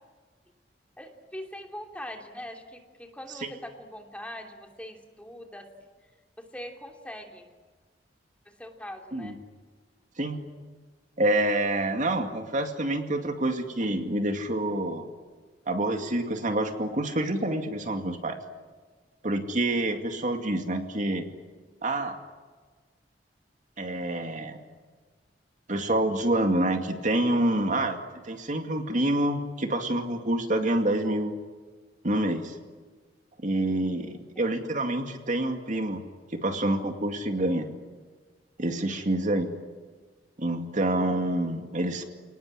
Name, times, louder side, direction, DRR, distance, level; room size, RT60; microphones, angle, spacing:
voice 1, 1.0-5.7 6.4-7.5 8.4-9.4 34.3-34.6, equal, 5° left, 3 dB, 2.9 m, -42 dB
voice 2, 11.2-15.0 15.7-18.4 19.2-21.3 21.8-22.2 23.8-24.6 25.7-28.0 28.2-31.3 32.0-32.6 33.4-36.0 36.3-37.7 38.6-39.5 40.4-42.0, right 1 dB, 45° right, 5 dB, 2.3 m, -27 dB
29.5 x 19.5 x 10.0 m, 1.4 s
head